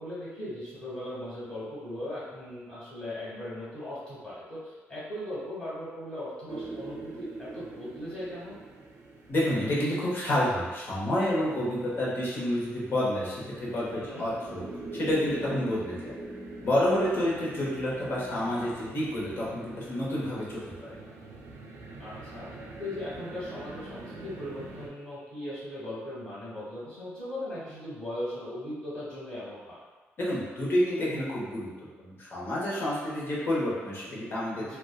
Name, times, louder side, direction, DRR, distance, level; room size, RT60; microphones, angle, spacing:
voice 1, 0.0-8.6 14.0-14.2 22.0-22.5 22.8-29.8 34.6-34.8, left 1 dB, 15° left, -10 dB, 1.3 m, -38 dB
sound 1, 6.5-24.9, right 2 dB, 75° right, 0.4 m, -44 dB
voice 2, 9.3-14.6 14.9-16.1 16.6-20.6 30.2-31.7 32.0-34.7, left 1 dB, 50° left, -7 dB, 0.9 m, -29 dB
2.6 x 2.2 x 2.2 m, 1.3 s
cardioid pair, 95°, 5 cm